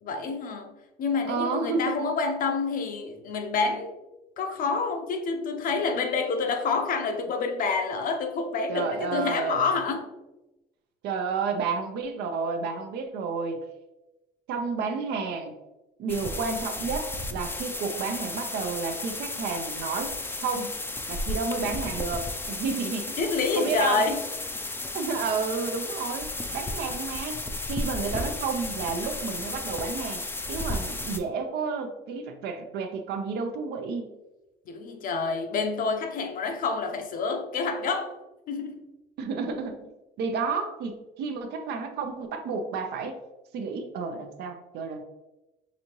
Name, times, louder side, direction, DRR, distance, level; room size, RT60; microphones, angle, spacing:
voice 1, 0.0-3.9 4.4-10.1 23.2-24.3 34.7-38.1 38.5-38.9, left 4 dB, 55° left, 0.6 m, -28 dB
voice 2, 1.3-1.9 8.7-9.7 11.0-13.6 14.5-15.6 16.0-20.1 20.4-20.7 21.1-23.2 23.6-24.2 24.9-30.2 30.5-34.1 39.2-39.9 40.2-43.2 43.5-45.0, right 5 dB, 75° right, 0.6 m, -31 dB
sound 1, 16.1-31.2, left 2 dB, 15° left, 0.4 m, -34 dB
5.0 x 2.7 x 2.9 m
cardioid pair, 110°, 17 cm